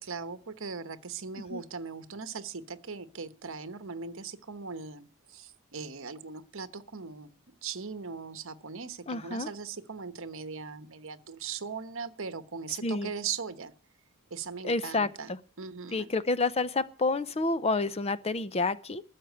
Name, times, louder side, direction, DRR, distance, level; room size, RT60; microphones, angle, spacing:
voice 1, 0.0-13.7 14.3-15.3 15.6-16.1, right 5 dB, 65° right, 1.1 m, -39 dB
voice 2, 9.1-9.5 12.8-13.1 14.6-15.1 15.9-19.0, left 3 dB, 30° left, 0.6 m, -29 dB
13.5 x 7.5 x 9.3 m
head